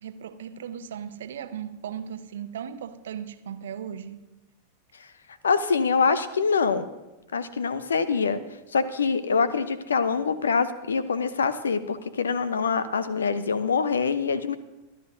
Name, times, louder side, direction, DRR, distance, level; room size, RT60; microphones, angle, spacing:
voice 1, 0.0-4.2, right 8 dB, 60° right, 0.8 m, -37 dB
voice 2, 5.4-6.9 7.3-8.4 8.7-14.6, left 5 dB, 70° left, 0.7 m, -24 dB
24.5 x 12.0 x 2.7 m
figure-of-eight pair, 90°, 0 cm